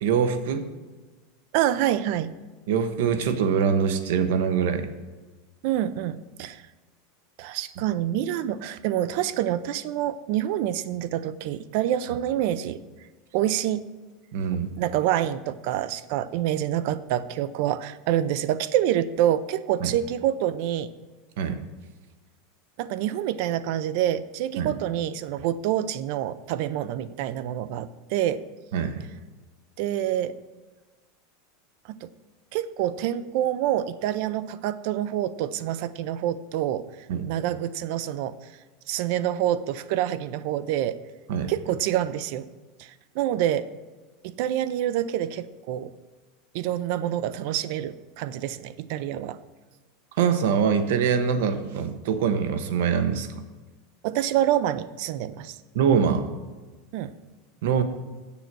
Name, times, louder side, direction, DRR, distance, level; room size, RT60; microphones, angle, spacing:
voice 1, 0.0-0.7 2.7-4.9 14.3-14.7 19.8-19.9 21.4-21.6 24.6-24.8 28.7-29.0 37.1-37.3 41.3-41.5 50.2-53.4 55.7-56.3 57.6-57.8, right 7 dB, 70° right, 9 dB, 0.9 m, -24 dB
voice 2, 1.5-2.3 5.6-6.6 7.4-12.8 13.3-13.9 14.8-20.9 22.8-28.5 29.8-30.4 31.9-32.1 32.5-36.9 37.3-38.4 38.9-41.0 41.5-42.5 42.8-43.7 44.2-45.9 46.5-49.4 54.0-55.6 56.9-57.2, right 11 dB, 50° right, 15 dB, 0.4 m, -27 dB
7.9 x 6.9 x 6.0 m, 1.3 s
supercardioid pair, 170°, 0 cm